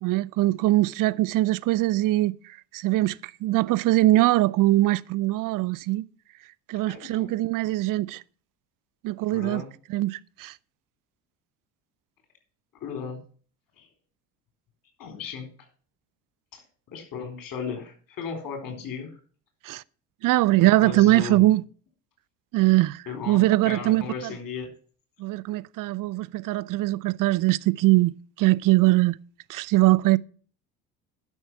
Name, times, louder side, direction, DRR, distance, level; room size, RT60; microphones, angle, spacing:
voice 1, 0.0-6.0 6.7-8.2 9.0-9.6 9.9-10.5 19.6-19.8 20.2-21.6 22.5-24.0 25.2-29.2 29.5-30.2, right 17 dB, 45° right, 0.6 m, -22 dB
voice 2, 6.9-7.3 9.3-9.7 12.8-13.2 13.8-13.9 15.0-15.5 16.5-16.6 16.9-19.2 20.6-21.5 23.1-24.7, left 6 dB, 45° left, 4.0 m, -36 dB
11.0 x 6.3 x 5.7 m
hypercardioid pair, 60°, 45 cm